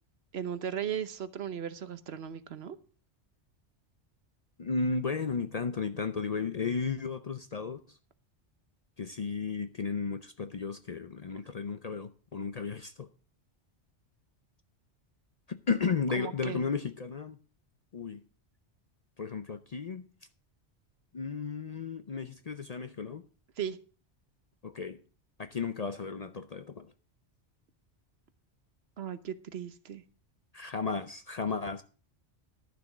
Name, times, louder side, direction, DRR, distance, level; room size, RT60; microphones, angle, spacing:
voice 1, 0.3-2.8 16.1-16.6 23.6-23.8 29.0-30.0, right 8 dB, 65° right, 1.0 m, -36 dB
voice 2, 4.6-7.8 9.0-13.1 15.5-17.4 17.9-18.2 19.2-20.1 21.1-23.3 24.6-25.0 25.4-26.9 30.5-31.8, left 5 dB, 45° left, 0.6 m, -34 dB
12.0 x 6.9 x 6.0 m
omnidirectional pair, 1.2 m